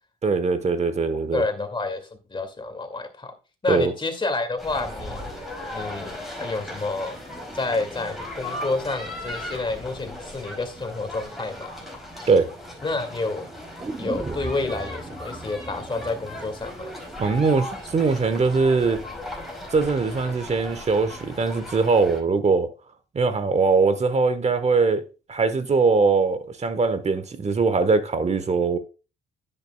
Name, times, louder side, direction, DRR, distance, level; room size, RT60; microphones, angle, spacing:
voice 1, 0.2-1.4 3.7-3.9 12.3-12.5 17.2-19.0 19.7-22.7 23.1-28.8, right 4 dB, 35° right, 1.2 m, -21 dB
voice 2, 1.3-3.3 3.6-7.2 7.5-11.7 12.8-13.5 14.0-17.0, left 3 dB, 25° left, 2.2 m, -29 dB
sound 1, 4.6-22.2, left 1 dB, ahead, 5.0 m, -37 dB
sound 2, 13.8-17.8 18.1-18.2, right 3 dB, 15° right, 0.7 m, -37 dB
10.0 x 9.1 x 2.2 m
cardioid pair, 90°, 20 cm